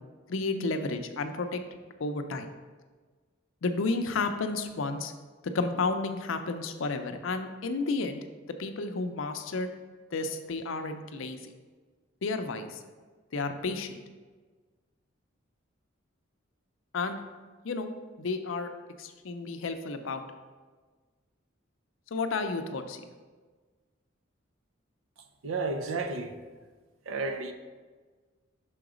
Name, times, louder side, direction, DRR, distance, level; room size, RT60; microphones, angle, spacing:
voice 1, 0.3-2.5 3.6-5.1 5.4-8.2 8.6-9.7 10.1-11.5 12.2-12.8 13.3-14.0 16.9-17.2 17.6-17.9 18.2-18.7 19.0-20.2 22.1-23.0, left 3 dB, 75° left, 7 dB, 0.5 m, -32 dB
voice 2, 25.4-26.3 27.1-27.5, right 3 dB, 90° right, 7 dB, 0.6 m, -32 dB
5.7 x 3.9 x 4.9 m, 1.4 s
head